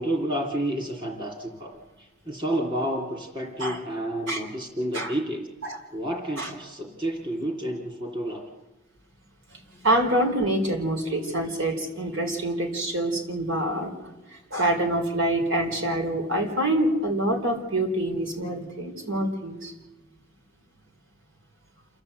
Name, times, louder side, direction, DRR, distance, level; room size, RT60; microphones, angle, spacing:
voice 1, 0.0-5.5 5.9-8.5 9.7-9.9, right 1 dB, 25° right, 1 dB, 2.8 m, -30 dB
voice 2, 9.8-13.9 14.5-19.7, right 1 dB, 75° right, 3 dB, 4.3 m, -26 dB
28.5 x 13.5 x 8.1 m, 1.1 s
head